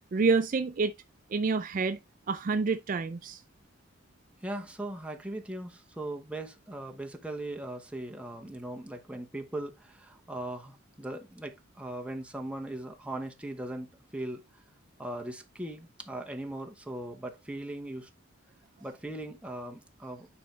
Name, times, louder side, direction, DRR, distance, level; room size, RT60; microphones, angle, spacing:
voice 1, 0.1-0.9 1.3-2.0 2.3-3.4, right 4 dB, 40° right, 0.4 m, -27 dB
voice 2, 4.4-13.9 14.1-14.4 15.0-18.1 18.8-20.3, right 1 dB, 5° right, 1.0 m, -39 dB
9.6 x 3.9 x 3.2 m
head